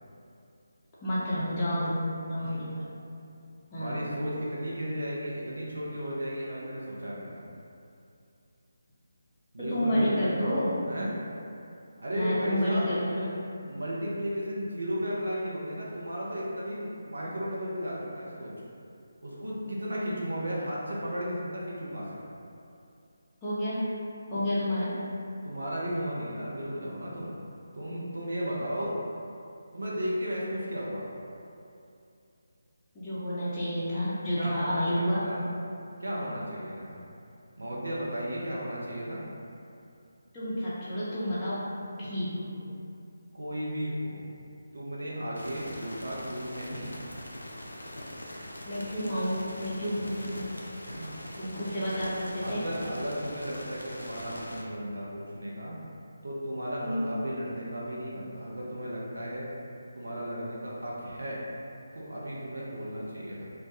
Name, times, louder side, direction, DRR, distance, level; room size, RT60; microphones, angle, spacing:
voice 1, 1.0-2.8 3.7-4.0 9.6-10.7 12.1-13.3 23.4-23.9 24.3-25.0 32.9-35.2 40.3-41.7 42.0-42.7 48.7-50.5 51.4-52.6 56.8-57.1, equal, 15° left, -13 dB, 0.5 m, -30 dB
voice 2, 3.7-7.4 9.5-10.5 10.9-11.1 12.0-12.9 13.6-18.5 19.2-22.2 25.4-27.3 27.7-29.0 29.7-31.1 34.4-35.4 36.0-37.0 37.6-39.2 43.3-44.4 44.7-46.9 50.8-51.1 52.4-55.8 56.2-59.4 59.9-61.4 61.9-63.4, equal, 65° right, -5 dB, 0.5 m, -34 dB
sound 1, 45.3-54.6, left 1 dB, 75° left, 0.3 m, -42 dB
2.1 x 2.1 x 2.8 m, 2.6 s
figure-of-eight pair, 150°, 0 cm